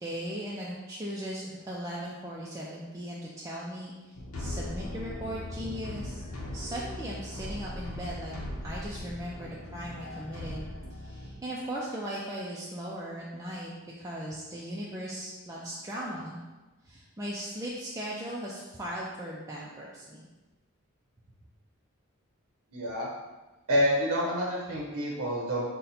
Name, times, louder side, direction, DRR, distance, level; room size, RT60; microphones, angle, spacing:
voice 1, 0.0-6.2 6.5-8.3 8.6-16.4 16.8-20.2, equal, 15° right, -5 dB, 0.3 m, -38 dB
sound 1, 4.1-11.4, left 1 dB, 85° left, 0.7 m, -39 dB
voice 2, 22.7-23.1 23.7-25.6, equal, 75° right, -4 dB, 0.7 m, -28 dB
3.9 x 2.1 x 4.1 m, 1.1 s
head